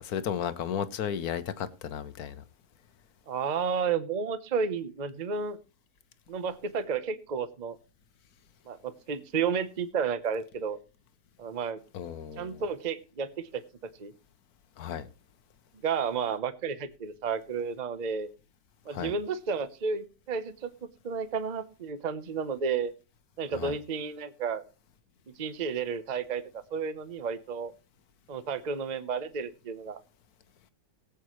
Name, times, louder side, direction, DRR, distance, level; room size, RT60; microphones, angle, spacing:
voice 1, 0.0-2.4 11.9-12.6 14.8-15.1 18.9-19.1 23.5-23.7, left 8 dB, 65° left, 1.3 m, -34 dB
voice 2, 3.3-5.6 6.3-7.8 8.7-10.8 11.4-11.8 12.4-13.6 14.0-14.1 15.8-18.3 18.8-20.7 21.0-22.9 23.4-24.6 25.4-26.4 26.7-27.7 28.3-30.0, right 6 dB, 35° right, 0.8 m, -32 dB
19.0 x 8.3 x 3.1 m
omnidirectional pair, 1.8 m